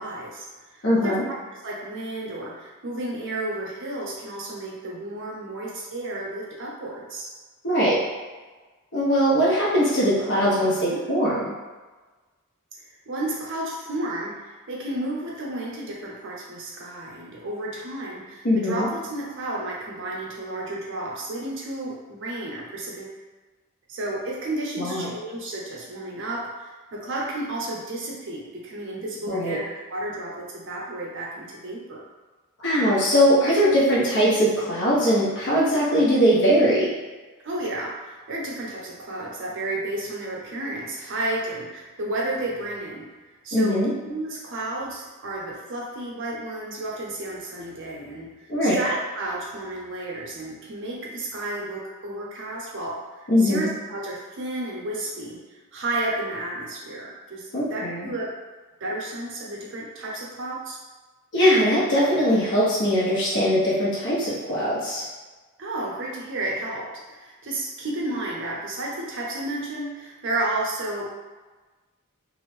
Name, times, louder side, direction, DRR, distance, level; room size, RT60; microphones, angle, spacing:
voice 1, 0.0-1.4 1.6-7.3 10.5-11.0 12.8-23.2 23.9-32.0 37.4-43.1 43.4-43.8 44.0-48.3 48.6-55.4 55.7-58.4 58.8-60.8 65.6-71.1, right 1 dB, 60° right, -4 dB, 0.6 m, -32 dB
voice 2, 0.8-1.2 7.6-8.0 8.9-11.5 18.4-18.9 24.8-25.1 29.3-29.6 32.6-36.9 43.5-43.9 48.5-48.8 53.3-53.7 57.5-58.1 61.3-65.0, equal, 55° left, -7 dB, 0.7 m, -21 dB
2.5 x 2.0 x 3.1 m, 1.3 s
head